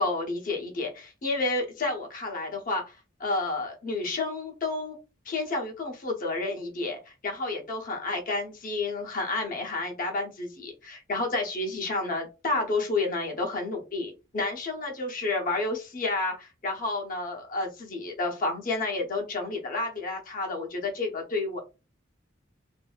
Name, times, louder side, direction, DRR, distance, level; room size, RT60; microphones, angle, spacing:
voice 1, 0.0-2.9 3.2-5.0 5.2-21.6, left 2 dB, 45° left, 0.8 m, -30 dB
2.7 x 2.5 x 2.3 m
head